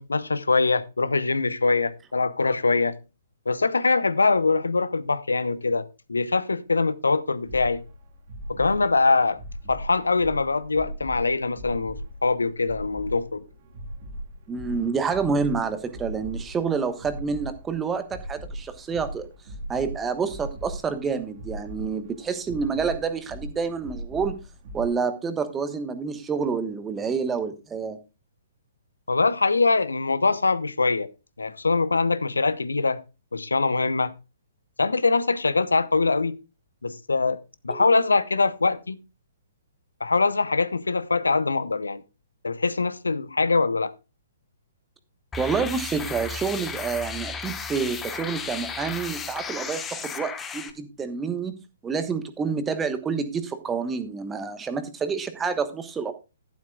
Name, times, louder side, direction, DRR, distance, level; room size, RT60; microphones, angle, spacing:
voice 1, 0.0-3.0 3.5-7.8 8.5-9.4 9.7-13.4 29.1-31.1 31.4-33.0 33.3-34.1 34.8-36.4 36.8-37.4 37.6-39.0 40.0-42.0 42.4-43.9, left 3 dB, 80° left, 0.8 m, -23 dB
sound 1, 7.5-24.9, right 1 dB, 45° right, 2.1 m, -39 dB
voice 2, 14.5-19.3 19.7-24.4 24.7-28.0 37.7-37.8 45.4-51.6 51.8-56.1, right 5 dB, 15° right, 1.3 m, -28 dB
sound 2, 45.3-50.7, left 5 dB, 15° left, 1.2 m, -34 dB
12.0 x 11.5 x 2.3 m
figure-of-eight pair, 125°, 0 cm